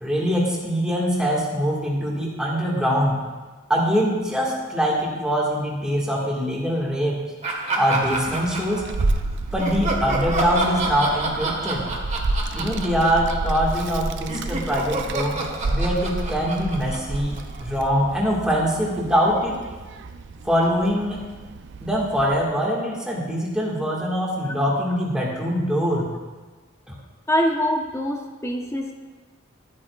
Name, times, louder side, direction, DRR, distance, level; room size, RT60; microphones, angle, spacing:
voice 1, 0.0-3.2 3.7-7.2 7.7-8.8 9.5-11.8 12.5-19.6 20.4-21.2 21.8-26.1 26.9-27.0, equal, 5° right, -4 dB, 1.7 m, -23 dB
Laughter, 7.4-9.2 9.6-14.0 14.3-17.9, right 2 dB, 35° right, 1.4 m, -29 dB
Child speech kid speaking, 8.0-22.4, right 2 dB, 60° right, 0.4 m, -30 dB
voice 2, 27.3-28.9, equal, 15° left, 2 dB, 0.8 m, -24 dB
13.0 x 8.6 x 2.4 m, 1.3 s
head